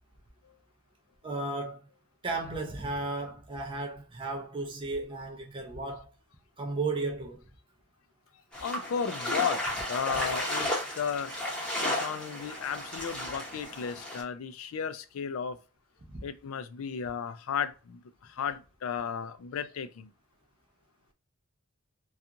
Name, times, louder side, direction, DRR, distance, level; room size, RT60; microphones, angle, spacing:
voice 1, 1.2-1.8 2.2-6.1 6.6-7.4 16.1-16.2, right 3 dB, 25° right, 0.4 m, -34 dB
sound 1, 8.5-14.2, left 1 dB, 5° left, 0.8 m, -33 dB
voice 2, 8.6-9.6 9.9-11.3 11.8-15.6 16.2-18.0 18.3-20.1, left 7 dB, 70° left, 0.4 m, -34 dB
2.8 x 2.4 x 2.4 m
head